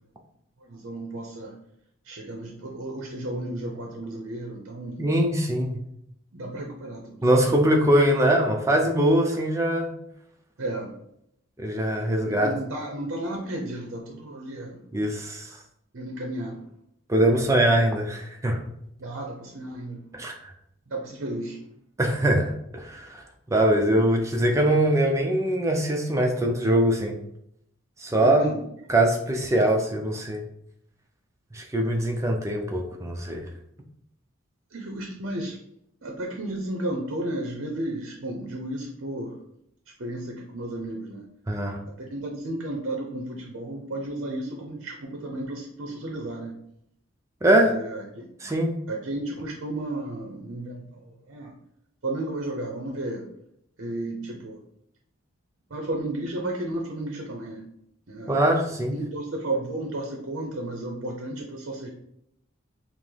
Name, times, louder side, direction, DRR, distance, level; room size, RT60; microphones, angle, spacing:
voice 1, 0.6-1.5 2.0-5.1 6.3-7.2 10.6-10.9 12.3-14.8 15.9-16.7 19.0-20.0 20.9-21.6 28.2-28.6 34.7-35.6 36.0-39.4 40.0-41.2 42.0-46.6 47.6-48.5 48.9-51.5 52.0-53.3 53.8-54.6 55.7-57.6 58.1-58.4 58.9-61.9, right 1 dB, 60° right, 1 dB, 0.6 m, -33 dB
voice 2, 5.0-5.8 7.2-9.9 11.6-12.5 14.9-15.6 17.1-18.6 20.1-20.5 22.0-23.2 23.5-27.2 28.0-28.4 28.9-30.4 31.5-33.5 41.5-41.8 47.4-47.7 48.4-48.8 58.3-58.9, right 1 dB, 15° right, 2 dB, 0.4 m, -22 dB
5.7 x 2.0 x 3.2 m, 0.76 s
head